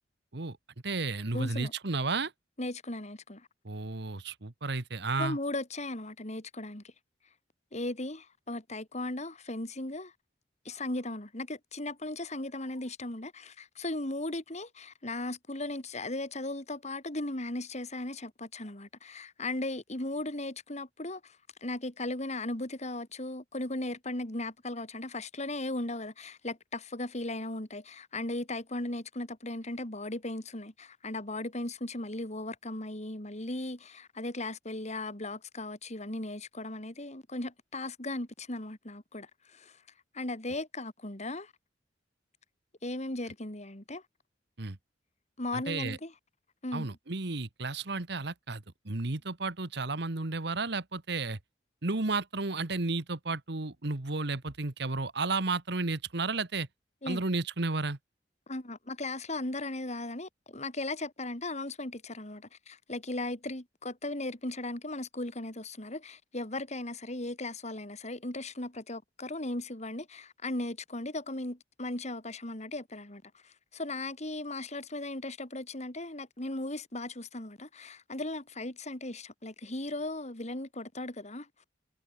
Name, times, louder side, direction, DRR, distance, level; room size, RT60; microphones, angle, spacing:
voice 1, 0.8-2.3 3.6-5.4 44.6-44.8 45.5-46.0 46.7-51.4 51.8-56.7 57.1-58.0, right 3 dB, 65° right, 1.5 m, -32 dB
voice 2, 1.3-1.7 2.6-3.5 5.2-6.9 7.7-10.1 10.7-39.8 40.1-41.5 42.8-44.0 45.4-46.1 46.6-46.9 57.0-57.2 58.5-81.6, left 2 dB, 40° left, 3.6 m, -37 dB
head